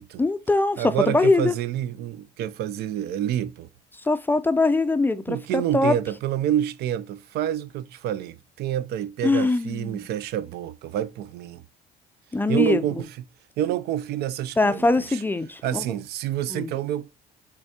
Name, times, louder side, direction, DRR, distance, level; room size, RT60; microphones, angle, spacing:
voice 1, 0.2-1.5 4.0-5.9 9.2-10.1 12.3-12.8 14.6-15.8 16.5-16.7, left 2 dB, 10° left, 0.3 m, -22 dB
voice 2, 0.8-3.7 5.3-11.6 12.5-13.1 13.6-15.2 15.6-17.1, right 11 dB, 75° right, 0.4 m, -28 dB
5.6 x 3.5 x 2.7 m
cardioid pair, 110°, 17 cm